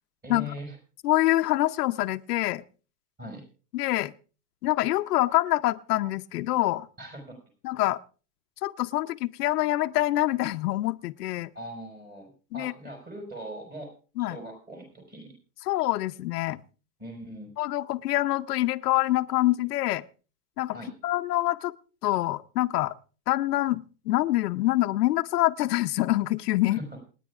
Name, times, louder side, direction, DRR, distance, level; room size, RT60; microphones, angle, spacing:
voice 1, 0.2-0.8 3.2-3.4 7.0-7.4 11.5-13.9 14.2-15.3 17.0-17.5 20.7-20.9 26.7-27.0, equal, 20° right, 2 dB, 5.3 m, -40 dB
voice 2, 1.0-2.6 3.7-4.1 4.6-6.9 7.6-8.0 8.6-11.5 12.5-12.7 14.2-14.4 15.7-16.6 17.6-20.0 20.6-20.8 21.0-21.7 22.0-22.9 23.3-26.8, left 16 dB, 75° left, 9 dB, 0.8 m, -25 dB
28.0 x 10.0 x 2.4 m, 0.37 s
supercardioid pair, 150°, 47 cm